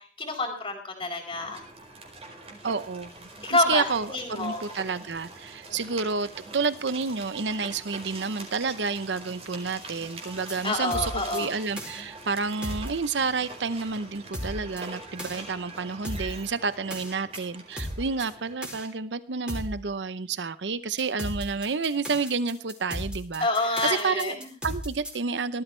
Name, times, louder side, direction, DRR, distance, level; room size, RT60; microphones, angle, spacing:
voice 1, 0.0-1.6 3.4-4.6 10.6-11.5 23.4-24.5, left 2 dB, 25° left, -6 dB, 4.0 m, -28 dB
sound 1, 1.3-18.6, right 2 dB, 35° right, 4.7 m, -44 dB
voice 2, 2.6-24.4 24.6-25.6, right 4 dB, 90° right, 14 dB, 0.8 m, -30 dB
sound 2, 10.3-10.5 10.9-11.4 11.8-12.0 12.6-12.9 14.3-14.8 15.2-15.4 16.0-16.4 16.9-17.4 17.8-18.2 18.6-18.9 19.5-19.8 21.0-25.1, equal, 5° right, 5.0 m, -35 dB
18.5 x 13.5 x 3.3 m, 0.41 s
head